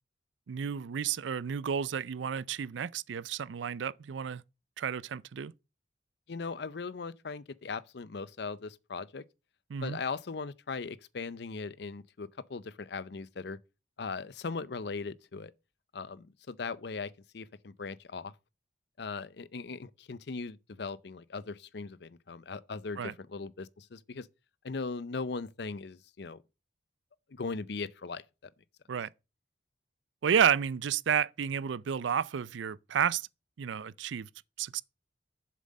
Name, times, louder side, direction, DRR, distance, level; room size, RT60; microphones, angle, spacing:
voice 1, 0.5-4.4 4.8-5.5 9.7-10.0 23.0-23.1 28.9-29.1 30.2-33.3 33.6-34.3 34.6-34.8, right 8 dB, 80° right, 0.4 m, -31 dB
voice 2, 6.3-9.2 9.8-13.6 14.0-15.5 15.9-18.3 19.0-24.3 24.6-26.4 27.3-28.2, left 4 dB, 60° left, 0.6 m, -39 dB
7.5 x 7.4 x 5.3 m
head